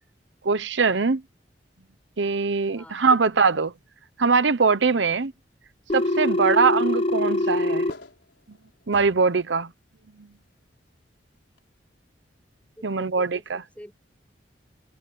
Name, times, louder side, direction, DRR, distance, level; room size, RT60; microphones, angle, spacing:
voice 1, 0.4-1.2 2.2-3.7 4.2-5.3 5.9-7.9 8.9-9.7 12.8-13.6, right 4 dB, 80° right, 0.8 m, -22 dB
Telephone, 5.9-7.9, left 1 dB, 30° left, 0.9 m, -23 dB
sound 1, 6.4-9.5 10.1-10.2 11.6-11.7, left 2 dB, 80° left, 4.8 m, -48 dB
voice 2, 12.8-13.9, equal, 10° left, 7.0 m, -46 dB
head